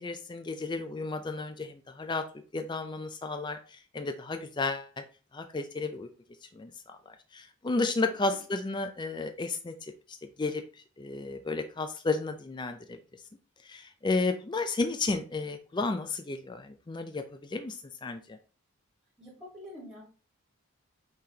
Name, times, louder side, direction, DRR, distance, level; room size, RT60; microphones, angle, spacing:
voice 1, 0.0-2.2 2.5-5.0 5.3-6.1 6.5-9.7 10.4-10.6 11.0-13.0 13.6-17.7 18.0-18.4, left 3 dB, 20° left, 7 dB, 0.3 m, -32 dB
voice 2, 8.0-8.4 19.2-20.0, equal, 10° right, -7 dB, 1.8 m, -47 dB
5.6 x 3.3 x 2.8 m, 0.36 s
head